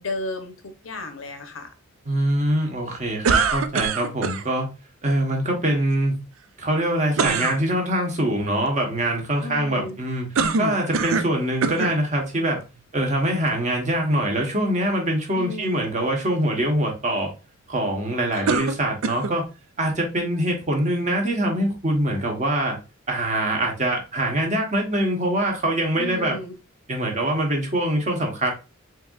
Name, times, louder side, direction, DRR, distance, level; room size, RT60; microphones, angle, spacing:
voice 1, 0.0-1.7 9.4-10.0 15.3-15.8 18.3-18.8 26.0-26.5, left 2 dB, 85° left, 7 dB, 0.9 m, -34 dB
voice 2, 2.1-4.7 5.0-6.2 6.6-10.3 10.5-12.6 12.9-17.3 17.7-19.4 19.8-22.8 23.1-26.3 26.9-28.5, right 1 dB, 35° right, 1 dB, 1.2 m, -24 dB
sound 1, 3.2-4.4 7.2-7.6 10.4-11.3 11.6-12.0 12.8-12.9 18.5-19.4, right 5 dB, 75° right, 0.4 m, -23 dB
4.6 x 3.6 x 2.4 m, 0.29 s
head